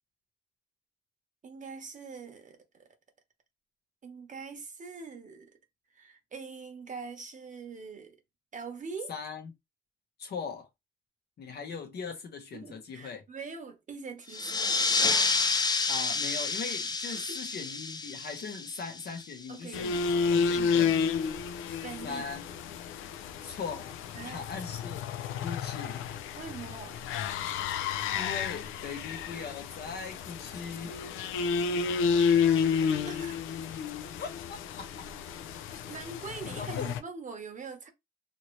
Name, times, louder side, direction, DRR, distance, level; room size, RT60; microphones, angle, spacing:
voice 1, 1.4-2.9 4.0-5.5 5.9-8.2 8.5-9.1 12.5-14.9 17.1-17.4 19.5-20.1 20.5-21.0 21.7-22.2 24.1-24.4 26.4-27.0 33.1-33.4 35.7-37.9, right 5 dB, 40° right, 0.9 m, -43 dB
voice 2, 9.1-9.5 10.2-10.7 11.4-13.2 15.9-20.0 20.3-20.9 22.0-22.5 23.4-24.0 24.2-25.1 25.4-26.1 27.7-31.3 34.2-34.9 36.4-36.9, left 5 dB, 55° left, 0.8 m, -40 dB
sound 1, 14.3-19.5, left 4 dB, 20° left, 0.4 m, -29 dB
sound 2, 19.7-37.0, left 6 dB, 90° left, 0.4 m, -31 dB
2.8 x 2.6 x 3.0 m
cardioid pair, 90°, 20 cm